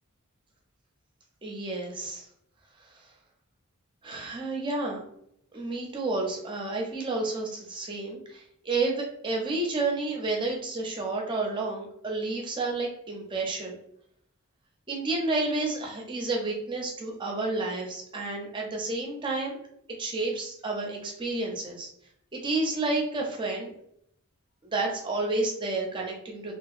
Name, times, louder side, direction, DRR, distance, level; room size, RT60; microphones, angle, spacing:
voice 1, 1.4-2.3 4.0-5.0 5.5-13.8 14.9-19.6 20.0-21.9 22.3-23.7 24.6-26.5, right 2 dB, 20° right, 0 dB, 0.5 m, -30 dB
2.7 x 2.3 x 2.4 m, 0.70 s
head